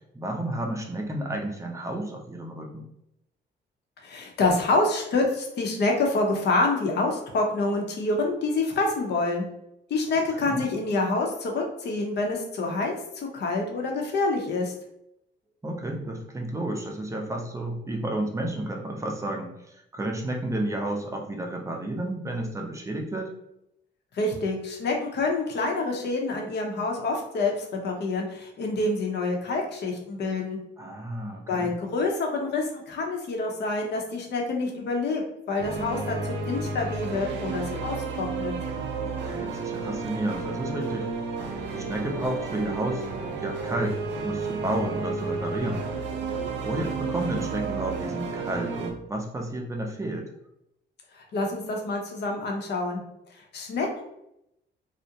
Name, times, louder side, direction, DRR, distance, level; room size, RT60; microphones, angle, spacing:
voice 1, 0.1-2.8 10.3-10.6 15.6-23.3 30.8-31.7 39.0-41.1 41.7-45.8 46.6-50.3, right 1 dB, 15° right, 2 dB, 0.5 m, -31 dB
voice 2, 4.0-9.5 9.9-14.7 24.1-30.6 31.5-35.2 35.5-38.5 51.1-53.0 53.3-54.0, left 3 dB, 60° left, 1 dB, 0.7 m, -27 dB
sound 1, 35.6-48.9, right 4 dB, 70° right, 0.5 m, -32 dB
2.4 x 2.1 x 2.7 m, 0.81 s
cardioid pair, 90°, 20 cm